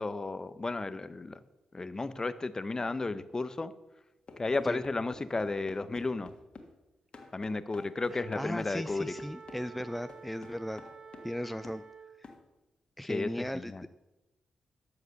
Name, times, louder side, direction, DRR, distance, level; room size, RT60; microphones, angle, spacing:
voice 1, 0.0-1.4 1.7-3.7 4.4-6.3 7.3-9.1 13.1-13.8, left 3 dB, 30° left, 13 dB, 0.7 m, -33 dB
sound 1, 4.3-6.7 7.1-11.4 11.6-11.8 12.2-12.4, left 3 dB, 50° left, 1.6 m, -50 dB
Wind instrument woodwind instrument, 8.0-12.3, right 5 dB, 40° right, 0.7 m, -50 dB
voice 2, 8.1-10.8 11.2-11.8 12.2-12.3 13.0-13.9, equal, 5° left, 12 dB, 0.3 m, -37 dB
13.0 x 4.9 x 6.6 m, 1.0 s
supercardioid pair, 55°, 2 cm